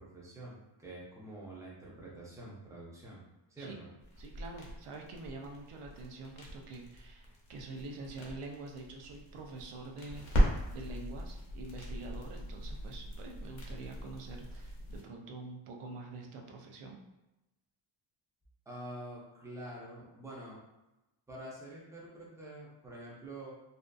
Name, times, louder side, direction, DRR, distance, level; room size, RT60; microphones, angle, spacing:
voice 1, 0.0-3.2 3.5-3.9 18.7-20.6 21.3-23.5, right 1 dB, 5° right, -5 dB, 0.5 m, -47 dB
sound 1, 4.0-15.0, equal, 70° left, 0.8 m, -38 dB
voice 2, 4.2-17.0, right 3 dB, 90° right, 1 dB, 0.6 m, -46 dB
2.6 x 2.4 x 2.2 m, 0.98 s
wide cardioid pair, 165°, 50 cm